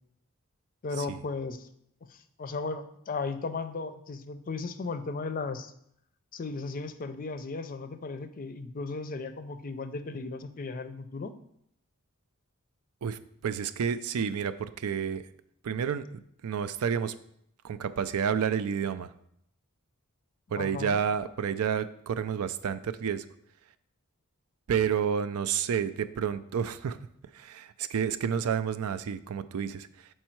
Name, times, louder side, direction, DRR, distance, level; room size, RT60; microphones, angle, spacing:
voice 1, 0.8-1.7 2.1-5.7 6.3-11.3 20.5-21.0, left 3 dB, 40° left, 10 dB, 0.5 m, -36 dB
voice 2, 13.0-15.2 15.6-17.1 17.6-19.1 20.5-23.2 24.7-27.0 27.3-30.1, right 7 dB, 75° right, 13 dB, 0.4 m, -30 dB
6.3 x 4.5 x 4.4 m, 0.71 s
head